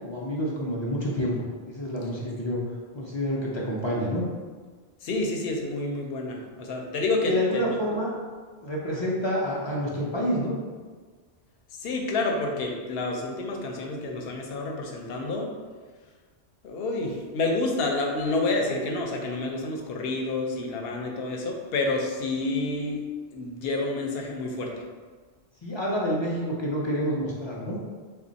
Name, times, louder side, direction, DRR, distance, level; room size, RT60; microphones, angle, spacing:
voice 1, 0.0-2.6 2.9-4.3 7.3-8.1 8.6-10.5 25.6-27.8, equal, 50° left, -4 dB, 0.3 m, -28 dB
voice 2, 5.0-7.8 11.8-15.5 16.6-23.0 23.3-24.7, left 2 dB, 65° left, 1 dB, 0.8 m, -29 dB
3.3 x 2.2 x 3.9 m, 1.5 s
omnidirectional pair, 1.1 m